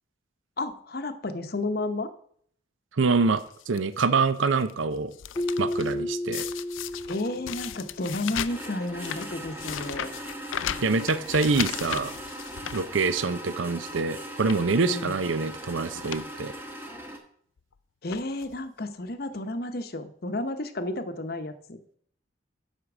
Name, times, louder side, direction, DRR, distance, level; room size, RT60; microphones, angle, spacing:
voice 1, 0.6-2.1 7.1-10.1 14.9-15.2 18.0-21.8, left 2 dB, 50° left, 9 dB, 0.8 m, -32 dB
voice 2, 3.0-5.1 5.6-6.4 10.8-12.1 12.7-16.5, right 4 dB, 85° right, 13 dB, 0.6 m, -25 dB
sound 1, 3.4-3.8 4.4-4.7 5.0-5.9 6.3-13.4 13.8-13.9 14.4-14.7 15.5-15.7 15.9-16.3 16.6-16.7 17.6-17.7 18.1-18.6 19.3-19.4 19.6-19.7, left 10 dB, 85° left, 0.4 m, -36 dB
Keyboard (musical), 5.3-8.1, left 1 dB, 15° left, 0.3 m, -32 dB
sound 2, 8.5-17.2, right 1 dB, 10° right, 1.2 m, -39 dB
8.2 x 5.8 x 6.0 m, 0.63 s
head